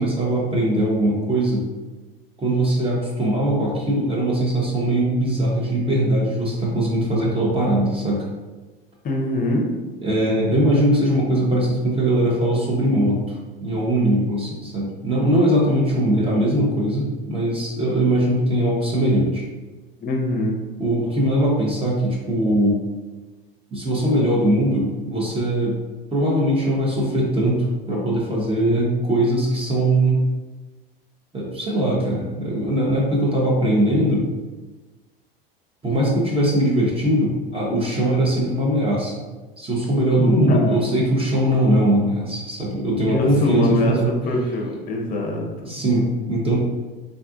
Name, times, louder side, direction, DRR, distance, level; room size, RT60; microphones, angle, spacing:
voice 1, 0.0-1.7 2.4-8.3 10.0-13.4 13.6-19.4 20.8-22.8 23.7-25.8 26.1-30.2 31.3-34.3 35.8-39.1 39.6-44.1 45.6-46.6, right 1 dB, 20° right, -4 dB, 0.8 m, -20 dB
voice 2, 9.0-9.7 20.0-20.6 40.2-40.8 43.1-45.4, left 2 dB, 30° left, 1 dB, 0.7 m, -22 dB
3.7 x 2.3 x 2.4 m, 1.2 s
hypercardioid pair, 80°, 29 cm